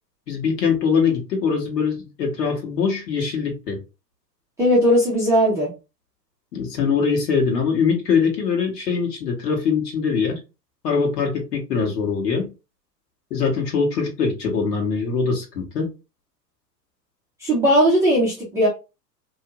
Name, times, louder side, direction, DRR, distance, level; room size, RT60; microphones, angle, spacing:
voice 1, 0.3-3.8 6.5-10.4 10.8-12.5 13.3-15.9, left 5 dB, 65° left, 1.3 m, -22 dB
voice 2, 4.6-5.7 17.4-18.7, equal, 5° right, 0.3 m, -18 dB
2.7 x 2.1 x 2.7 m
hypercardioid pair, 100°, 50 cm